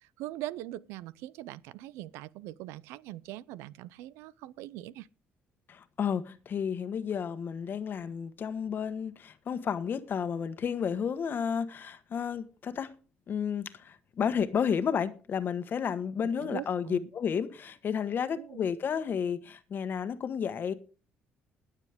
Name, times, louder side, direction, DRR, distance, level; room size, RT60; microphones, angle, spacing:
voice 1, 0.0-5.1 16.4-17.1 18.4-18.7, right 15 dB, 85° right, 0.5 m, -42 dB
voice 2, 5.7-12.9 13.3-20.7, left 7 dB, 50° left, 1.3 m, -32 dB
20.5 x 7.4 x 3.5 m
supercardioid pair, 80°, 4 cm